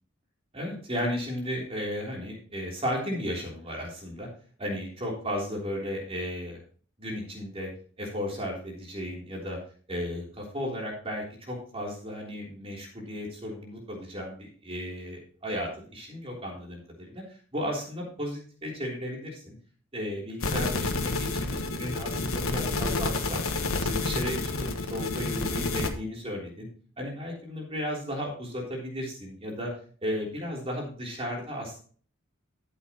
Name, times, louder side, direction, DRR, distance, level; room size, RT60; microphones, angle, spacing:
voice 1, 0.5-4.3 4.6-6.6 7.0-7.7 8.0-9.6 9.9-17.2 17.5-19.5 19.9-23.5 23.8-24.5 24.8-26.7 27.0-29.7 30.0-31.8, equal, 30° right, -2 dB, 3.5 m, -34 dB
sound 1, 20.4-25.9, left 3 dB, 85° left, 1.3 m, -29 dB
13.0 x 7.9 x 3.0 m, 0.43 s
head